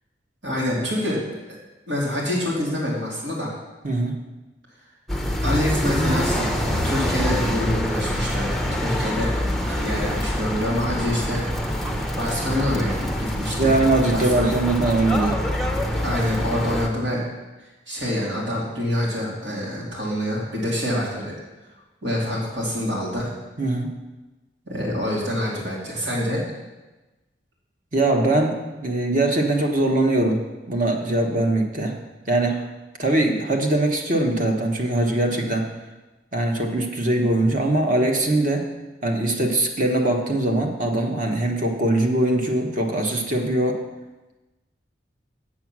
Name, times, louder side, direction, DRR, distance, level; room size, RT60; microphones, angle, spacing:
voice 1, 0.4-1.2 1.9-3.5 5.4-9.4 9.7-11.4 12.2-13.7 14.1-14.5 15.8-17.2 17.9-21.3 22.0-23.3 24.7-26.4, left 1 dB, 75° right, -4 dB, 2.7 m, -26 dB
voice 2, 3.8-4.2 13.6-15.4 23.6-24.0 27.9-30.4 30.7-32.0 32.3-32.6 33.0-35.7 36.3-38.7 39.0-43.8, right 2 dB, 45° right, 2 dB, 1.1 m, -21 dB
sound 1, 5.1-16.9, equal, ahead, 0.6 m, -25 dB
7.9 x 7.2 x 6.0 m, 1.1 s
head